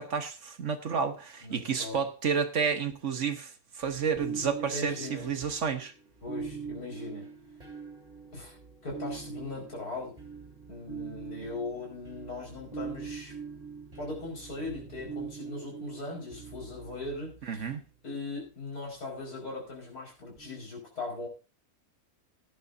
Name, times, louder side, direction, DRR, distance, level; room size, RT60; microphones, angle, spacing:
voice 1, 0.0-5.9 17.4-17.8, right 6 dB, 55° right, 1.4 m, -31 dB
voice 2, 1.4-2.0 4.7-5.3 6.2-7.3 8.3-8.6 8.8-10.2 10.7-13.3 14.0-17.7 18.0-21.3, left 2 dB, 85° left, 5.5 m, -39 dB
sound 1, 3.8-17.6 20.4-20.6, right 5 dB, 25° right, 3.7 m, -43 dB
17.0 x 10.0 x 2.7 m
omnidirectional pair, 1.6 m